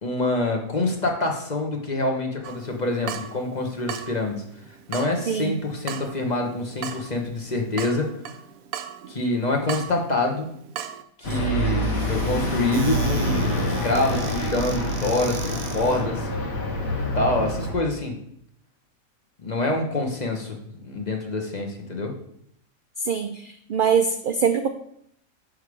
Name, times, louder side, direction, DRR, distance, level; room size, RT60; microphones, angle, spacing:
voice 1, 0.0-4.4 4.9-8.2 9.1-10.5 11.2-16.3 17.1-18.1 19.4-20.6 20.8-22.1, left 2 dB, 35° left, 1 dB, 1.1 m, -26 dB
Water tap faucet / Drip, 2.4-11.0, right 9 dB, 85° right, 1.1 m, -38 dB
voice 2, 5.3-5.6 23.0-24.7, right 6 dB, 70° right, 7 dB, 0.5 m, -23 dB
sound 1, 11.2-17.7, equal, 80° left, 1.6 m, -26 dB
Squeak / Cupboard open or close, 11.2-16.1, right 5 dB, 50° right, 0.8 m, -40 dB
6.3 x 5.5 x 4.8 m, 0.69 s
omnidirectional pair, 1.5 m